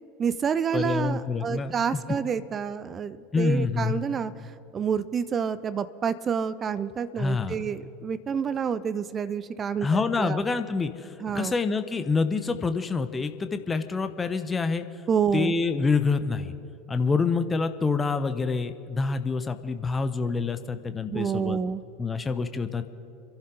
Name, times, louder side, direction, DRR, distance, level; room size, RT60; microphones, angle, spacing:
voice 1, 0.2-10.4 11.2-11.5 15.1-15.5 21.1-21.8, right 7 dB, 30° right, 14 dB, 0.7 m, -28 dB
voice 2, 0.7-2.0 3.3-4.0 7.2-7.6 9.8-14.8 15.3-16.5 16.9-21.6 22.0-22.9, left 4 dB, 20° left, 10 dB, 0.9 m, -27 dB
28.0 x 11.5 x 3.9 m, 2.7 s
figure-of-eight pair, 75°, 0 cm